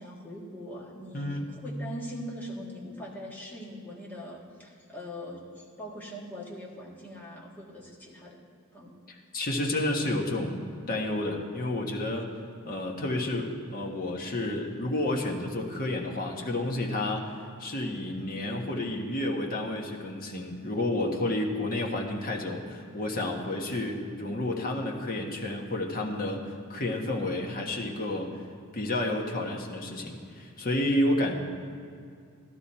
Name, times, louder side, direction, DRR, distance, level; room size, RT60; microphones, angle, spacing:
voice 1, 0.0-8.4 8.7-8.9, equal, 10° left, -3 dB, 1.6 m, -42 dB
voice 2, 1.1-1.5 9.1-10.6 10.9-12.3 12.6-17.3 17.6-28.3 28.7-31.3, left 1 dB, 40° left, 1 dB, 1.3 m, -30 dB
13.5 x 12.0 x 4.3 m, 2.4 s
head